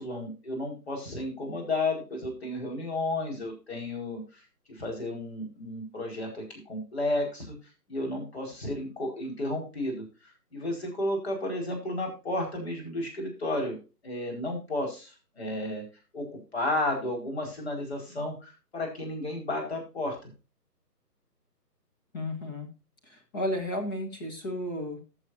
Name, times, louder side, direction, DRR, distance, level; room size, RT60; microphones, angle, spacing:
voice 1, 0.0-4.4 4.7-7.6 7.9-10.0 10.5-13.8 14.0-15.8 16.1-20.2, left 1 dB, 40° left, 2 dB, 5.0 m, -32 dB
voice 2, 22.1-22.7 23.1-25.0, left 1 dB, 15° left, 3 dB, 1.4 m, -33 dB
18.5 x 7.3 x 2.7 m, 0.31 s
figure-of-eight pair, 145°, 49 cm